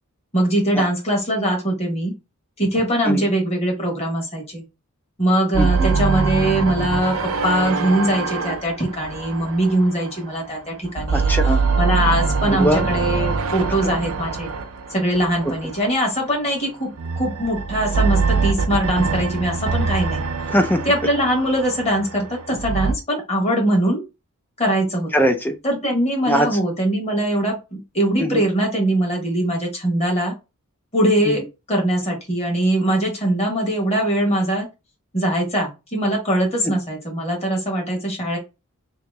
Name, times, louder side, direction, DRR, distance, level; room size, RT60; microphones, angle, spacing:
voice 1, 0.3-2.1 2.6-4.6 5.2-7.2 7.4-11.3 11.8-14.5 14.9-16.9 17.2-20.2 20.8-24.0 24.6-25.1 25.6-30.3 30.9-31.4 31.7-34.7 35.1-38.4, right 1 dB, 30° left, 1.3 m, -21 dB
sound 1, 5.5-10.5 10.8-16.2 16.9-22.9, right 4 dB, 75° right, 0.5 m, -23 dB
voice 2, 5.6-5.9 11.1-11.6 12.5-12.8 13.7-13.9 15.4-15.5 20.5-20.9 25.1-25.6 26.3-26.6 28.2-28.4 31.3-31.4 36.6-36.7, equal, 10° left, 0.4 m, -21 dB
3.0 x 2.8 x 3.4 m
head